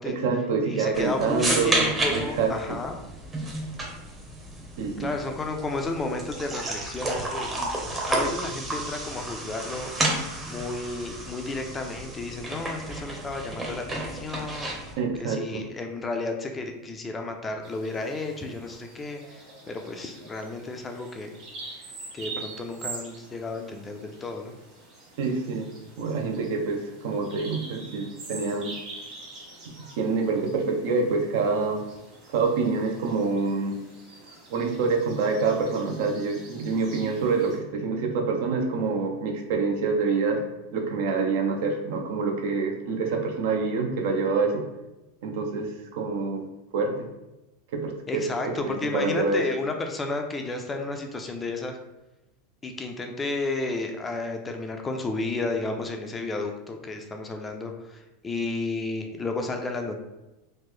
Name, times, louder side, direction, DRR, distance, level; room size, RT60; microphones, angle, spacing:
voice 1, 0.1-1.7 2.1-2.8 4.8-5.1 15.0-15.6 25.2-25.7 26.0-28.7 30.0-31.8 32.3-33.8 34.5-40.4 40.7-44.6 45.2-46.4 46.7-47.1 47.7-49.4, right 4 dB, 70° right, 2 dB, 0.6 m, -26 dB
voice 2, 0.6-3.0 5.0-7.7 8.1-14.9 15.2-21.4 22.1-24.6 48.1-51.8 52.6-60.0, left 3 dB, 15° left, 4 dB, 0.4 m, -32 dB
sound 1, 0.9-14.9, right 1 dB, 20° right, 0.7 m, -31 dB
Bird vocalization bird call bird song, 17.6-37.6, right 3 dB, 45° right, 1.3 m, -45 dB
3.1 x 2.1 x 3.5 m, 0.98 s
supercardioid pair, 125°, 0 cm